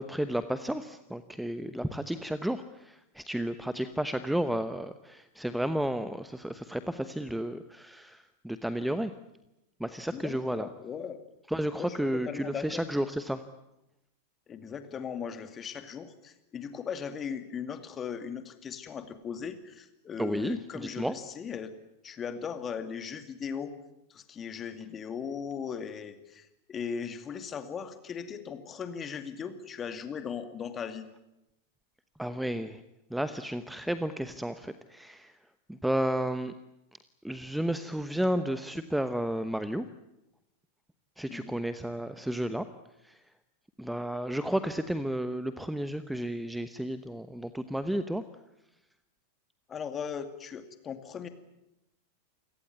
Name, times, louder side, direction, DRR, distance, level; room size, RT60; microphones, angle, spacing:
voice 1, 0.0-9.1 9.8-10.7 11.5-13.4 20.2-21.1 32.2-32.8 33.1-35.3 35.7-36.5 37.2-39.9 41.2-42.7 43.0-43.2 43.8-48.2, right 1 dB, ahead, 12 dB, 1.0 m, -32 dB
voice 2, 10.1-11.2 11.8-12.0 12.3-12.8 14.5-21.7 22.0-23.7 24.1-31.1 41.3-41.6 49.7-51.3, left 7 dB, 25° left, 9 dB, 2.3 m, -38 dB
28.5 x 17.5 x 9.5 m, 0.90 s
figure-of-eight pair, 90°, 0 cm